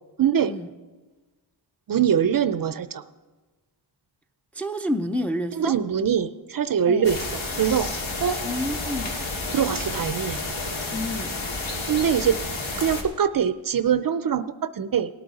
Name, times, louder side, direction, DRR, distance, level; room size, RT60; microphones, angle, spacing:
voice 1, 0.2-0.5 1.9-3.0 5.5-7.9 8.2-8.4 9.5-10.4 11.9-12.4 12.8-15.1, right 8 dB, 45° right, 0.5 m, -23 dB
voice 2, 4.6-5.7 6.9-7.1 8.4-9.1 10.9-11.4, equal, 5° left, 0.4 m, -29 dB
sound 1, 7.0-13.0, left 2 dB, 70° left, 2.2 m, -30 dB
18.5 x 8.7 x 4.1 m
wide cardioid pair, 90°, 48 cm